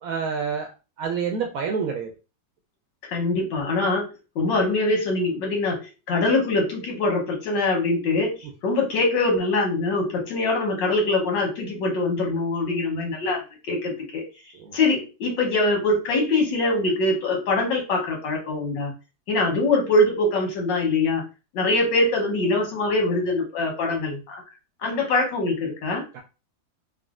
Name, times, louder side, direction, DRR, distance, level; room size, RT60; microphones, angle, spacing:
voice 1, 0.0-0.7 1.0-2.1 14.6-14.7 26.1-26.2, right 6 dB, 70° right, 3 dB, 0.8 m, -27 dB
voice 2, 3.1-4.1 4.3-5.8 6.1-8.3 8.6-13.4 13.7-14.2 14.7-18.9 19.3-21.2 21.5-24.4 24.8-26.0, left 2 dB, 85° left, 0 dB, 1.6 m, -23 dB
3.7 x 2.0 x 2.4 m, 0.31 s
omnidirectional pair, 1.9 m